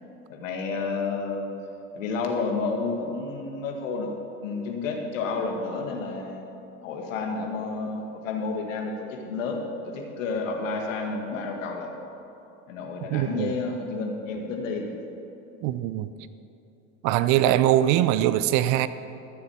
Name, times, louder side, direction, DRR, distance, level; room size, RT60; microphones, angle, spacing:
voice 1, 0.3-1.5 1.9-4.1 4.4-6.5 6.8-12.0 12.7-14.9, left 4 dB, 80° left, 2.0 m, -30 dB
voice 2, 13.1-13.5 15.6-16.1 17.0-18.9, right 13 dB, 50° right, 0.6 m, -22 dB
13.5 x 6.9 x 7.1 m
hypercardioid pair, 90°, 39 cm